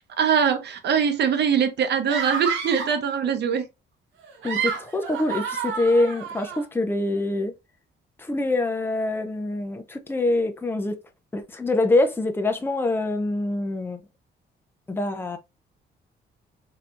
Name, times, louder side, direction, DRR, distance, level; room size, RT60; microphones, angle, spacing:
voice 1, 0.2-3.6, right 7 dB, 60° right, 0.9 m, -22 dB
sound 1, 2.1-3.1 4.2-6.6, right 7 dB, 75° right, 1.0 m, -30 dB
voice 2, 4.4-7.5 8.2-11.0 11.3-14.0 14.9-15.4, left 2 dB, 10° left, 0.6 m, -25 dB
3.2 x 2.9 x 2.5 m
cardioid pair, 90°, 20 cm